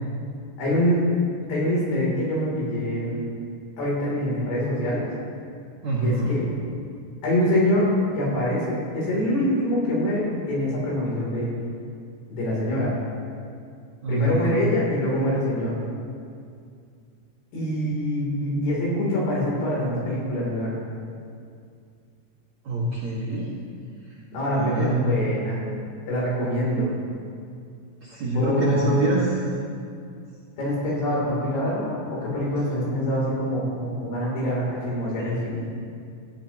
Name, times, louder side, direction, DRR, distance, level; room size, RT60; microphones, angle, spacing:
voice 1, 0.6-1.0 1.5-3.2 3.8-5.1 6.0-6.1 7.2-7.9 8.2-11.6 12.3-12.9 14.1-15.8 17.5-20.7 24.3-25.6 26.1-26.9 28.3-29.1 30.6-35.6, equal, 55° left, -5 dB, 5.1 m, -25 dB
voice 2, 5.8-6.3 14.0-14.6 22.6-23.5 24.5-25.1 28.0-29.3 35.2-35.3, right 1 dB, 55° right, -8 dB, 2.1 m, -25 dB
17.0 x 14.0 x 3.0 m, 2.3 s
omnidirectional pair, 6.0 m